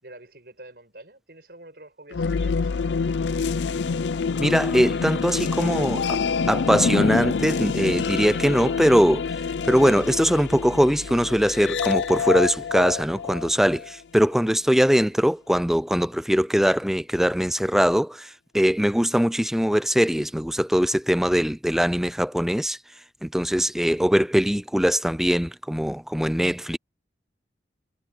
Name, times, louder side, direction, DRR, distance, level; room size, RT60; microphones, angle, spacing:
voice 1, 0.0-2.9, right 1 dB, 60° right, 6.9 m, -46 dB
sound 1, 2.1-13.9, left 5 dB, 90° left, 0.5 m, -26 dB
voice 2, 4.4-6.2 6.5-9.4 9.6-22.8 23.2-26.8, equal, ahead, 0.4 m, -21 dB
head